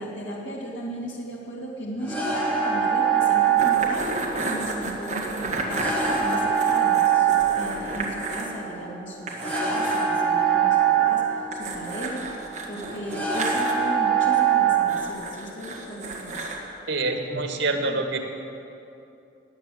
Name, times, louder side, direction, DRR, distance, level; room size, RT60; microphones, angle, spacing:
voice 1, 0.0-16.5, equal, 85° left, -4 dB, 2.9 m, -36 dB
sound 1, 2.0-15.1, right 8 dB, 10° left, 1.7 m, -24 dB
sound 2, 3.6-8.5 8.8-8.9 9.3-10.1 11.5-13.7 14.9-16.6, right 2 dB, 40° right, 1.9 m, -32 dB
voice 2, 16.9-18.2, right 3 dB, 85° right, 4 dB, 1.9 m, -26 dB
19.5 x 8.7 x 8.0 m, 2.7 s
head